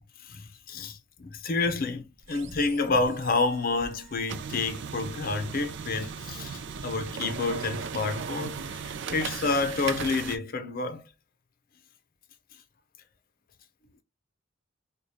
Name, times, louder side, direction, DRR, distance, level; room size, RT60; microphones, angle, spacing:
voice 1, 0.2-11.0, left 3 dB, 50° left, 0.6 m, -29 dB
sound 1, 2.2-10.4, right 6 dB, 65° right, 0.5 m, -37 dB
4.7 x 2.3 x 2.7 m
head